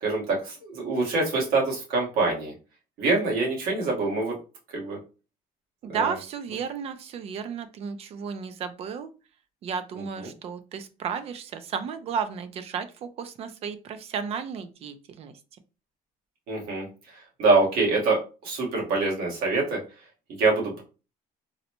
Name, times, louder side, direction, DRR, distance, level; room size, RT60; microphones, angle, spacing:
voice 1, 0.0-2.5 3.0-4.4 4.7-5.0 5.9-6.1 16.5-19.8 20.4-20.8, right 3 dB, 75° right, -2 dB, 1.4 m, -25 dB
voice 2, 5.8-9.1 9.6-15.3, right 6 dB, 40° right, 11 dB, 0.4 m, -33 dB
3.9 x 2.1 x 2.8 m, 0.33 s
cardioid pair, 170°, 16 cm